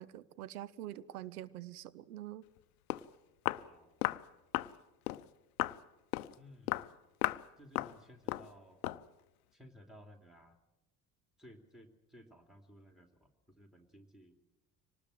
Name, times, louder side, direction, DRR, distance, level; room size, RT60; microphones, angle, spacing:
voice 1, 0.0-2.5, right 13 dB, 70° right, 0.8 m, -45 dB
Walk footsteps, 2.6-2.7 2.9-3.1 3.5-3.7 4.0-4.2 4.5-4.7 5.1-5.2 5.6-5.8 6.1-6.3 6.7-6.9 7.2-7.5 7.8-8.0 8.3-8.5 8.8-9.0, left 17 dB, 70° left, 0.7 m, -35 dB
voice 2, 3.5-4.1 6.4-6.9 7.6-8.8 9.5-10.6 11.4-14.4, equal, ahead, 2.8 m, -58 dB
24.0 x 19.0 x 7.7 m
figure-of-eight pair, 60°, 47 cm